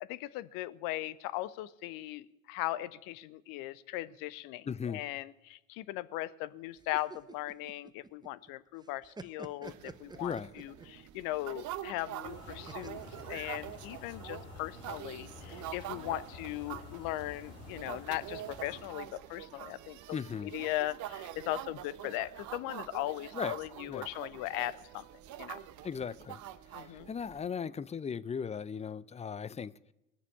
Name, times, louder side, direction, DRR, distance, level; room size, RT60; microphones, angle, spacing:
voice 1, 0.0-13.0 13.3-25.0 25.4-25.6 26.7-27.1, left 16 dB, 60° left, 0.7 m, -38 dB
voice 2, 4.7-5.0 10.2-10.5 20.1-20.5 23.3-23.6 23.9-24.1 25.8-26.4 26.7-29.7, left 6 dB, 15° left, 0.5 m, -37 dB
sound 1, 6.8-8.5 8.8-11.0 12.7-14.1, right 3 dB, 10° right, 0.8 m, -49 dB
sound 2, 9.6-27.5, right 13 dB, 50° right, 0.8 m, -45 dB
sound 3, 12.2-18.8, left 2 dB, 90° left, 4.4 m, -49 dB
19.0 x 6.8 x 8.5 m
hypercardioid pair, 60°, 38 cm